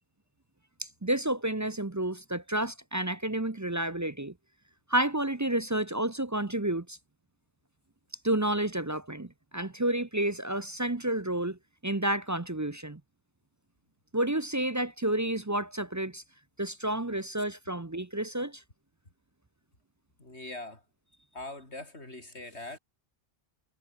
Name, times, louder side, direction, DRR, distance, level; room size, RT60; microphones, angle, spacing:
voice 1, 0.8-4.3 4.9-7.0 8.2-13.0 14.1-16.2 16.6-18.6, right 1 dB, 20° right, 0.6 m, -30 dB
voice 2, 20.2-20.8 21.3-22.8, left 2 dB, 60° left, 5.8 m, -42 dB
omnidirectional pair, 1.2 m